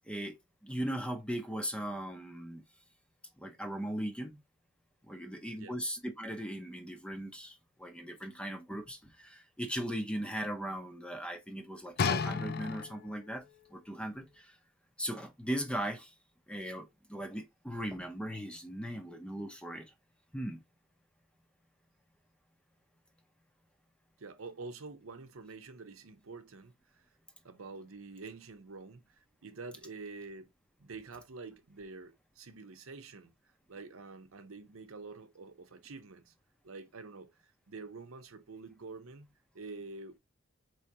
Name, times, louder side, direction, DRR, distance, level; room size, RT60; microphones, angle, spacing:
voice 1, 0.1-2.6 3.4-4.4 5.1-13.4 13.7-14.6 15.0-16.1 16.5-19.9 20.3-20.6, equal, 5° left, 0.6 m, -38 dB
sound 1, 12.0-13.3 14.0-14.1, left 5 dB, 50° left, 0.4 m, -32 dB
voice 2, 24.2-27.1 27.4-30.5 30.8-33.3 33.7-36.3 36.6-37.3 37.7-40.2, right 3 dB, 85° right, 0.8 m, -47 dB
4.6 x 3.2 x 2.8 m
head